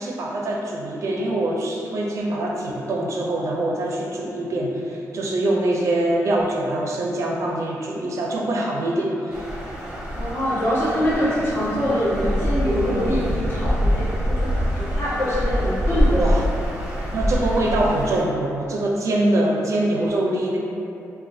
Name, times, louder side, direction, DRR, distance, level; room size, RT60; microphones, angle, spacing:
voice 1, 0.0-9.5 12.9-13.2 16.1-16.5 17.1-20.6, right 1 dB, 60° right, -2 dB, 0.4 m, -24 dB
sound 1, 9.3-18.2, equal, 15° right, 0.8 m, -25 dB
voice 2, 10.1-14.5 14.8-16.4, equal, 40° left, -10 dB, 1.2 m, -24 dB
4.1 x 2.1 x 2.5 m, 2.7 s
cardioid pair, 95°, 6 cm